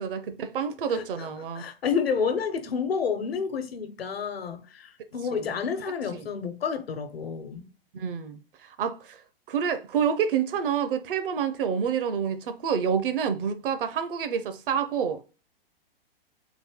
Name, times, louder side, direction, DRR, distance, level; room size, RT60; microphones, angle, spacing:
voice 1, 0.0-1.6 5.3-5.5 6.1-6.3 7.9-9.2 9.5-15.2, right 7 dB, 60° right, 0.8 m, -28 dB
voice 2, 0.9-1.3 1.5-7.7, left 6 dB, 80° left, 1.0 m, -30 dB
4.0 x 2.7 x 3.5 m
hypercardioid pair, 120°, 30 cm